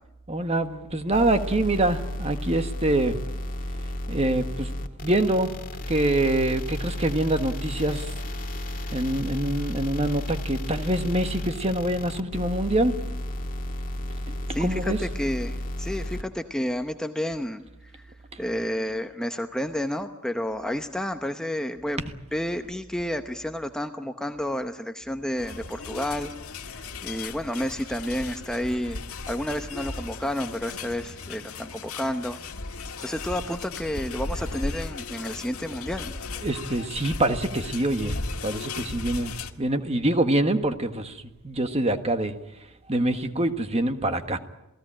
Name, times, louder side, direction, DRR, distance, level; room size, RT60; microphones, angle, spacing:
voice 1, 0.3-3.2 4.1-4.7 5.0-5.5 5.9-8.1 8.9-13.0 14.6-15.0 36.4-42.3 42.9-44.4, right 1 dB, 30° right, 8 dB, 1.5 m, -25 dB
sound 1, 1.1-16.2, left 1 dB, 40° left, 1.8 m, -33 dB
voice 2, 14.5-17.6 17.9-22.0 22.3-26.3 27.0-32.4 33.0-36.1, equal, 5° left, 6 dB, 0.8 m, -30 dB
sound 2, 25.4-39.5, left 3 dB, 80° left, 1.7 m, -36 dB
27.5 x 18.0 x 8.9 m, 0.92 s
head